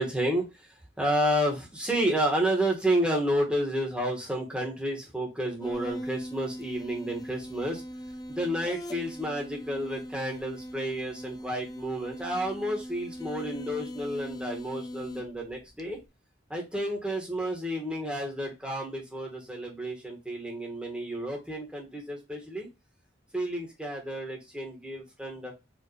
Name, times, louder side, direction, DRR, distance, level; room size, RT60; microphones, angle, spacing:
voice 1, 0.0-7.8 8.3-16.0 16.5-22.7 23.3-25.5, right 1 dB, 5° right, -1 dB, 1.6 m, -31 dB
sound 1, 5.6-16.1, equal, 20° left, 0.5 m, -40 dB
4.9 x 2.9 x 3.2 m, 0.23 s
head